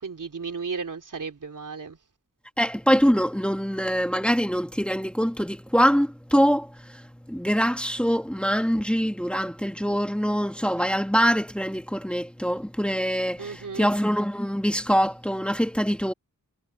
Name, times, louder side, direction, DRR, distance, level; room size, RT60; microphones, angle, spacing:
voice 1, 0.0-2.0 13.4-13.9, right 5 dB, 70° right, 3.7 m, -34 dB
voice 2, 2.6-16.1, equal, 5° left, 2.4 m, -24 dB
wide cardioid pair, 60°, 33 cm